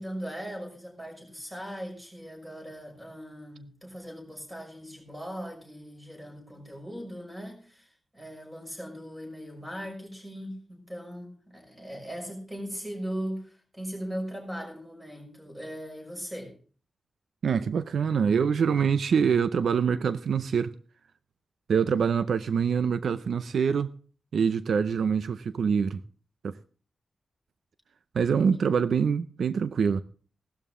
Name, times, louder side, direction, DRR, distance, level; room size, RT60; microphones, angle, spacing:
voice 1, 0.0-16.6 28.4-28.6, equal, 10° right, 6.1 m, -39 dB
voice 2, 17.4-20.7 21.7-23.9 24.3-26.0 26.4-26.6 28.1-30.0, right 6 dB, 85° right, 0.6 m, -25 dB
17.0 x 12.5 x 3.7 m
wide cardioid pair, 155°, 0 cm